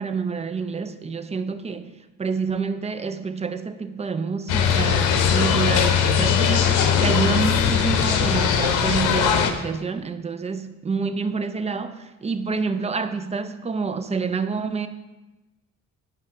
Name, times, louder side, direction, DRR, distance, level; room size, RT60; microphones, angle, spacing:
voice 1, 0.0-1.9 2.2-14.9, right 5 dB, 20° right, 0.4 m, -28 dB
sound 1, 4.5-9.5, left 8 dB, 80° left, 0.7 m, -20 dB
9.5 x 3.2 x 4.4 m
cardioid pair, 90°, 30 cm